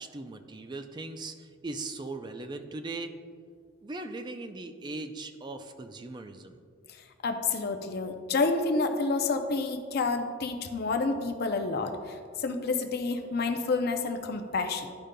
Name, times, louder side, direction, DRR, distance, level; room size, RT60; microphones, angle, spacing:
voice 1, 0.0-3.1 3.8-6.6, right 2 dB, 20° right, 7 dB, 0.4 m, -39 dB
voice 2, 7.2-14.9, left 3 dB, 55° left, 6 dB, 0.5 m, -29 dB
12.0 x 5.0 x 2.2 m, 2.1 s
head